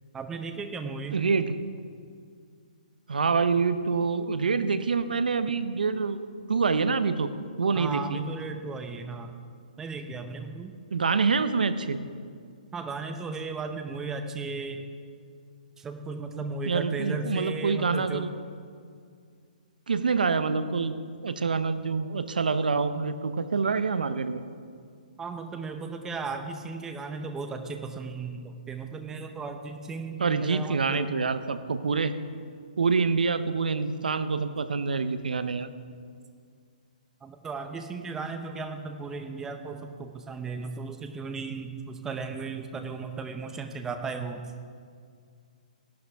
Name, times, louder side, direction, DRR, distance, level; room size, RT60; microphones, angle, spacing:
voice 1, 0.1-1.2 7.7-9.3 9.8-10.7 12.7-14.8 15.8-18.3 25.2-31.1 37.2-44.5, right 4 dB, 10° right, 7 dB, 0.7 m, -35 dB
voice 2, 1.1-1.6 3.1-6.2 6.5-7.3 7.6-8.2 10.9-12.0 16.6-18.3 19.9-21.0 21.2-24.4 30.2-32.1 32.8-35.7, right 4 dB, 85° right, 11 dB, 0.7 m, -26 dB
16.5 x 11.5 x 3.5 m, 2.2 s
hypercardioid pair, 150°, 5 cm